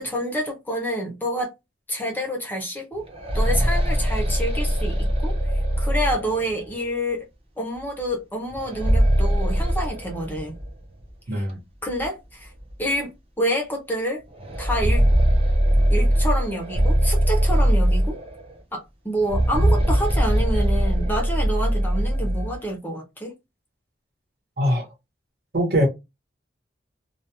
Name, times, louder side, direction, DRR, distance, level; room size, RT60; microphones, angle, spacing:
voice 1, 0.0-1.5 1.9-3.1 3.3-7.3 7.6-10.6 11.3-11.4 11.8-12.5 12.8-13.1 13.4-14.2 14.6-15.1 15.9-18.2 18.7-23.3, equal, 10° left, 0.6 m, -28 dB
sound 1, 2.9-6.7 8.5-10.7 11.0-11.1 12.0-12.1 12.6-12.7 14.3-18.5 19.2-22.6, equal, 30° right, 0.6 m, -21 dB
voice 2, 11.3-11.6 24.6-24.9 25.5-25.9, equal, 60° right, 0.9 m, -21 dB
2.3 x 2.2 x 2.8 m
head